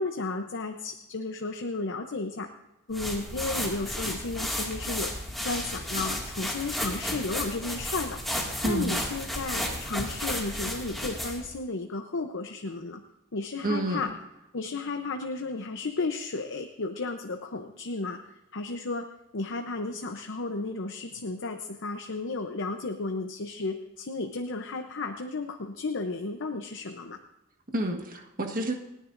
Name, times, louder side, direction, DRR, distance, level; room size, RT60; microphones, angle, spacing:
voice 1, 0.0-2.5 2.9-5.1 5.4-13.0 13.3-14.1 14.5-18.2 18.5-19.1 19.3-27.2, left 3 dB, 55° left, 6 dB, 0.8 m, -33 dB
sound 1, 2.9-11.5, equal, ahead, 2.1 m, -33 dB
voice 2, 8.6-8.9 13.6-14.1 27.7-28.7, right 1 dB, 40° right, 3 dB, 1.5 m, -29 dB
29.5 x 10.0 x 2.6 m, 0.94 s
head